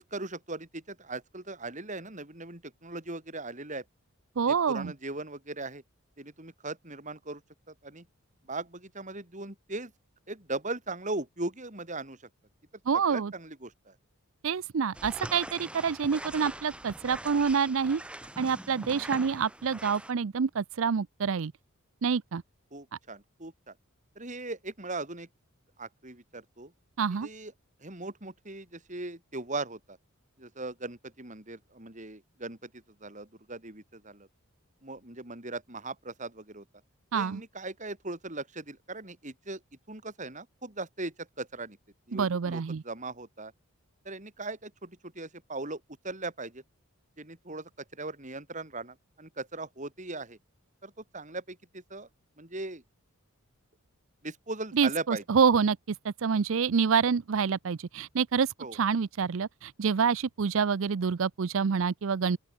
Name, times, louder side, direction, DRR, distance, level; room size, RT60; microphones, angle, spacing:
voice 1, 0.0-3.8 4.5-5.8 6.2-7.4 7.7-8.1 8.5-9.9 10.3-12.3 13.1-13.9 18.8-19.1 22.7-23.7 24.2-25.3 25.8-26.7 27.2-27.5 27.8-30.0 30.4-34.3 34.8-36.6 37.1-39.6 39.9-41.8 42.1-43.5 44.0-46.6 47.2-50.4 50.8-52.1 52.4-52.8 54.2-55.2 58.6-58.8, right 2 dB, 35° right, 4.0 m, -39 dB
voice 2, 4.4-4.9 12.9-13.3 14.4-18.0 18.4-21.5 22.0-22.4 27.0-27.3 37.1-37.4 42.1-42.8 54.7-62.4, right 6 dB, 65° right, 0.5 m, -27 dB
sound 1, 14.9-20.1, right 1 dB, 5° right, 1.0 m, -42 dB
open air
head